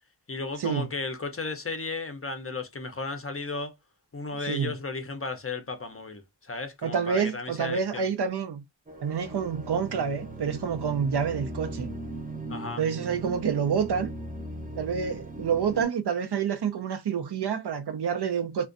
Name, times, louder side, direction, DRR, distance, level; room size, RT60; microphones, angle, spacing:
voice 1, 0.3-3.7 4.1-8.1 12.5-12.8, left 3 dB, 35° left, 0.5 m, -34 dB
voice 2, 6.8-8.6 9.0-11.9 12.8-14.1 14.8-18.7, right 7 dB, 70° right, 0.5 m, -28 dB
sound 1, 8.9-15.8, right 1 dB, 20° right, 0.5 m, -38 dB
2.4 x 2.2 x 2.4 m
wide cardioid pair, 40°, 42 cm